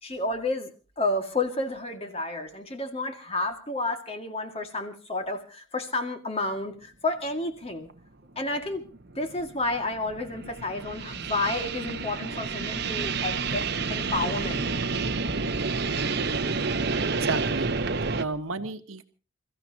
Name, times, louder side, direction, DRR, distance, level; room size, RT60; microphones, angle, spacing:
voice 1, 0.0-7.9 8.4-8.9 9.2-14.6, left 2 dB, 30° left, 6 dB, 2.0 m, -31 dB
sound 1, 7.9-8.0 8.6-18.2, right 4 dB, 50° right, 1.0 m, -29 dB
voice 2, 17.2-17.7 18.0-19.1, right 3 dB, 80° right, 9 dB, 1.4 m, -32 dB
28.5 x 15.0 x 2.9 m, 0.33 s
head